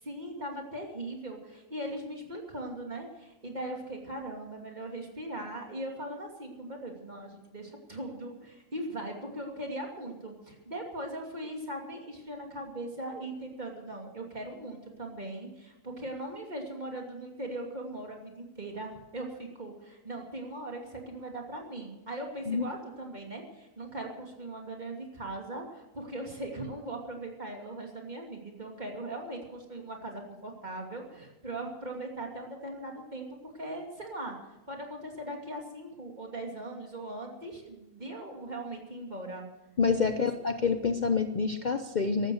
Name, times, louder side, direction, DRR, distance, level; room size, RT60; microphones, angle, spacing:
voice 1, 0.0-34.4 34.7-39.4 39.9-40.3, right 1 dB, 35° right, 1 dB, 2.8 m, -39 dB
voice 2, 39.8-42.3, left 5 dB, 40° left, 7 dB, 0.8 m, -27 dB
15.5 x 12.5 x 6.4 m, 1.0 s
omnidirectional pair, 1.4 m